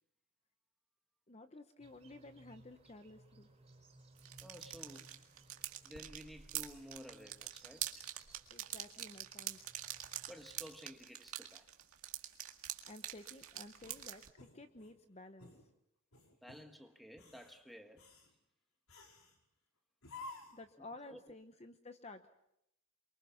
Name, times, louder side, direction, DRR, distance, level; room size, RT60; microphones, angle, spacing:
voice 1, 1.3-3.5 8.5-9.7 10.1-10.2 12.8-15.5 20.5-22.3, left 2 dB, 30° left, 0.9 m, -53 dB
sound 1, 1.8-10.8, right 2 dB, 25° right, 4.6 m, -63 dB
sound 2, 4.2-14.3, right 12 dB, 85° right, 2.0 m, -45 dB
voice 2, 4.4-5.2 5.8-8.1 10.3-11.7 16.4-18.1 21.1-21.2, equal, ahead, 1.6 m, -53 dB
sound 3, 13.8-15.0 15.4-15.6 16.1-16.7 17.1-17.6 18.0-18.3 18.9-19.4 20.0-20.7, left 2 dB, 80° left, 4.8 m, -53 dB
29.0 x 23.5 x 5.9 m
head